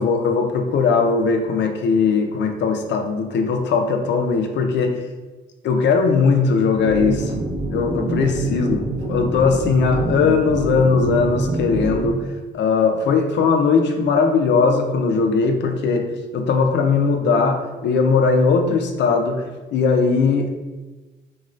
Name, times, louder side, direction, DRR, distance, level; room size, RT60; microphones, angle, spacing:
voice 1, 0.0-5.0 5.6-7.3 7.7-12.3 12.5-20.5, left 4 dB, 65° left, 5 dB, 0.4 m, -19 dB
sound 1, 6.7-12.1, right 2 dB, 50° right, 0.6 m, -26 dB
2.5 x 2.2 x 3.1 m, 1.2 s
cardioid pair, 90°, 20 cm